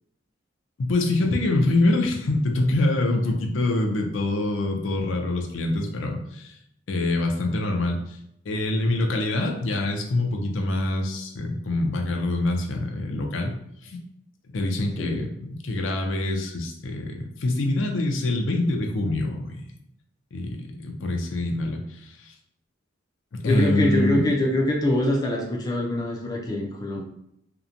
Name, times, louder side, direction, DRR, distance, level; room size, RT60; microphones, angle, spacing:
voice 1, 0.8-6.5 6.9-8.2 8.5-13.6 13.8-14.0 14.5-19.6 20.3-21.8 22.2-22.3 23.3-24.2, left 2 dB, 80° left, 2 dB, 0.5 m, -25 dB
voice 2, 23.4-27.0, left 1 dB, 20° left, -1 dB, 0.3 m, -24 dB
2.8 x 2.1 x 2.5 m, 0.77 s
head